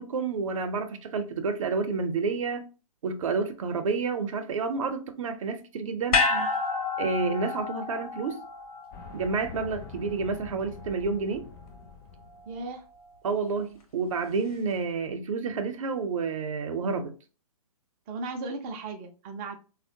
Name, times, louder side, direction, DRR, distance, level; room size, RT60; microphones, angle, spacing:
voice 1, 0.0-2.6 3.0-6.2 7.0-8.4 9.1-11.4 13.2-17.1, right 4 dB, 55° right, 0.6 m, -29 dB
sound 1, 6.1-10.5 10.8-10.9, left 4 dB, 65° left, 0.8 m, -30 dB
sound 2, 8.9-12.8, left 5 dB, 35° left, 0.5 m, -45 dB
voice 2, 12.5-12.8 18.1-19.6, right 3 dB, 15° right, 0.3 m, -36 dB
3.5 x 2.1 x 2.6 m
figure-of-eight pair, 135°, 20 cm